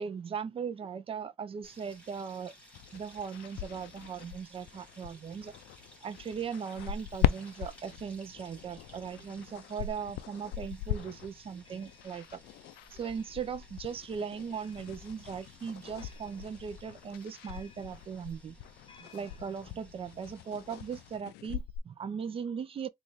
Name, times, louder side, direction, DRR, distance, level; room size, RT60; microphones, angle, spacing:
voice 1, 0.0-2.5 2.9-5.5 6.0-12.4 12.9-18.6 19.0-22.9, right 6 dB, 35° right, 0.5 m, -38 dB
sound 1, 1.6-21.2, equal, 5° left, 2.0 m, -58 dB
sound 2, 2.7-21.8, left 12 dB, 75° left, 0.4 m, -40 dB
sound 3, 8.3-19.8, left 5 dB, 30° left, 0.7 m, -59 dB
3.8 x 2.5 x 3.1 m
cardioid pair, 110°, 17 cm